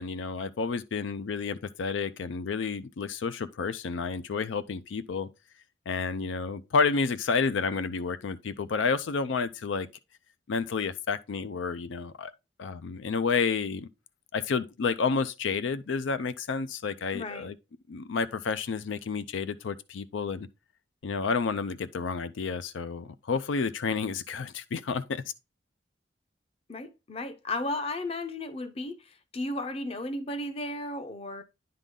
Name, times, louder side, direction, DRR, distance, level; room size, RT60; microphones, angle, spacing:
voice 1, 0.0-5.3 5.9-9.9 10.5-12.3 12.6-13.9 14.3-17.5 17.9-20.5 21.0-25.2, left 5 dB, 85° left, 0.4 m, -30 dB
voice 2, 17.1-17.5 26.7-29.0 29.3-31.4, left 2 dB, 30° left, 0.6 m, -34 dB
9.9 x 3.8 x 3.7 m
head